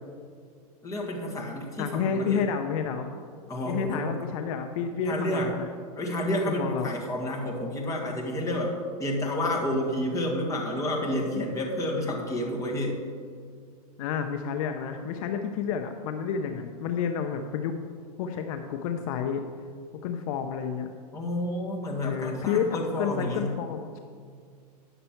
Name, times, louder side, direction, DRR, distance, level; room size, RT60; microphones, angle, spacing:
voice 1, 0.8-2.4 3.5-4.1 5.0-5.5 6.0-13.0 21.1-23.5, left 1 dB, 15° left, -2 dB, 1.7 m, -30 dB
voice 2, 1.8-3.2 3.7-5.7 6.4-6.9 14.0-17.8 18.2-19.4 20.0-20.9 22.0-24.0, left 7 dB, 60° left, 6 dB, 0.6 m, -30 dB
9.9 x 6.7 x 4.5 m, 2.1 s
hypercardioid pair, 130°, 20 cm